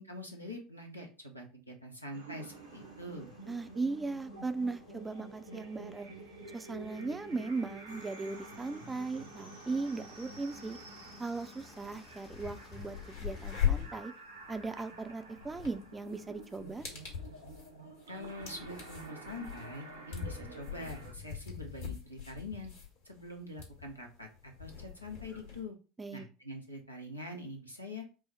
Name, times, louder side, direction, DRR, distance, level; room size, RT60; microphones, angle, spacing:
voice 1, 0.0-3.3 18.1-22.7 23.0-25.7 26.1-28.0, left 1 dB, 90° left, 1 dB, 0.8 m, -44 dB
sound 1, 2.1-21.1, right 2 dB, 80° right, 0.9 m, -50 dB
sound 2, 2.4-13.5, left 4 dB, 35° left, 0.9 m, -61 dB
voice 2, 3.5-6.1 6.5-10.8 11.2-14.1 14.5-16.8 26.0-26.3, right 3 dB, 15° right, 9 dB, 0.5 m, -38 dB
sound 3, 11.8-11.9 12.2-25.6, left 9 dB, 60° left, 1.7 m, -40 dB
4.8 x 2.1 x 4.4 m, 0.34 s
figure-of-eight pair, 70°, 0 cm